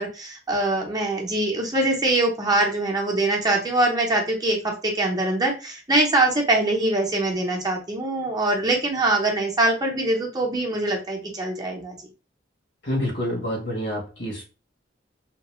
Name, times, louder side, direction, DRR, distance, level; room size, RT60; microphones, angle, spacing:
voice 1, 0.0-12.0, right 2 dB, 20° right, -1 dB, 0.7 m, -23 dB
voice 2, 12.8-14.4, equal, 65° left, -1 dB, 1.2 m, -27 dB
2.8 x 2.0 x 3.0 m, 0.31 s
head